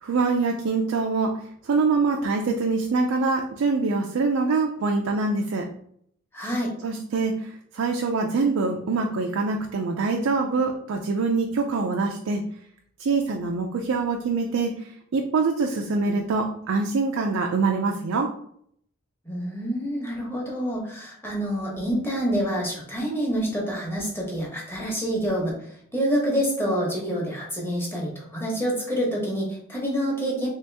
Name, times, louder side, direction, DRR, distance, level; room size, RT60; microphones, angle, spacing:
voice 1, 0.0-5.7 6.8-12.4 13.0-18.3, right 4 dB, 85° right, 1 dB, 0.4 m, -24 dB
voice 2, 6.3-6.7 19.2-25.6 25.9-30.5, equal, 10° left, -3 dB, 1.0 m, -27 dB
3.0 x 2.8 x 3.3 m, 0.66 s
head